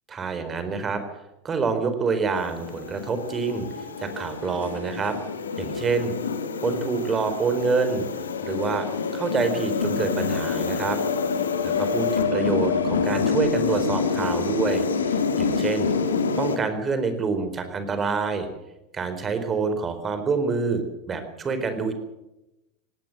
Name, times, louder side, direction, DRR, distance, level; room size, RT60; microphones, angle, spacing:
voice 1, 0.1-1.0 1.4-3.7 4.0-5.2 5.6-6.1 6.6-8.1 8.4-8.9 9.1-11.0 11.6-14.9 15.3-15.9 16.4-18.5 18.9-21.9, right 4 dB, 25° right, 9 dB, 4.3 m, -26 dB
sound 1, 2.4-16.6, left 5 dB, 75° left, 2.1 m, -27 dB
18.0 x 18.0 x 8.0 m, 0.93 s
figure-of-eight pair, 85°, 0 cm